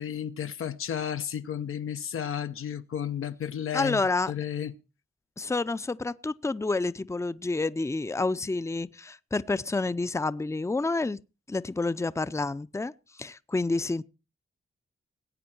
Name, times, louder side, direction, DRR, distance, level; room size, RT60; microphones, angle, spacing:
voice 1, 0.0-4.0 4.3-4.7, left 9 dB, 85° left, 0.8 m, -32 dB
voice 2, 3.7-4.3 5.4-11.2 11.5-12.9 13.2-14.0, left 3 dB, 15° left, 0.5 m, -29 dB
19.5 x 8.6 x 4.5 m
cardioid pair, 55°, 21 cm